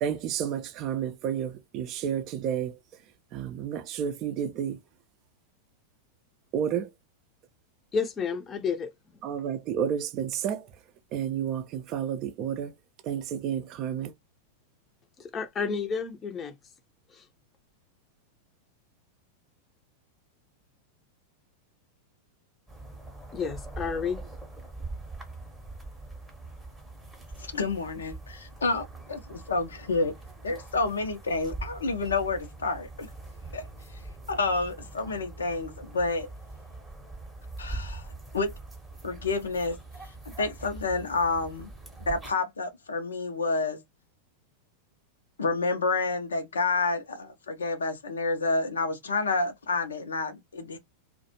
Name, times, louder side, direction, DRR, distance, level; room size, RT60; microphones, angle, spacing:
voice 1, 0.0-2.8 3.3-4.8 6.5-6.9 9.2-10.7 11.1-12.7 13.0-14.1, right 8 dB, 40° right, 0.4 m, -31 dB
voice 2, 7.9-9.2 15.2-16.5 17.1-17.2 23.3-24.2, left 5 dB, 25° left, 0.6 m, -31 dB
sound 1, 22.7-42.3, right 2 dB, 5° right, 0.8 m, -43 dB
voice 3, 27.4-30.1 30.4-33.1 33.5-33.7 34.3-36.3 37.6-38.0 38.3-38.5 39.0-39.8 40.3-41.7 42.0-43.8 45.4-50.8, left 3 dB, 70° left, 0.5 m, -29 dB
2.3 x 2.1 x 2.7 m
figure-of-eight pair, 90°, 0 cm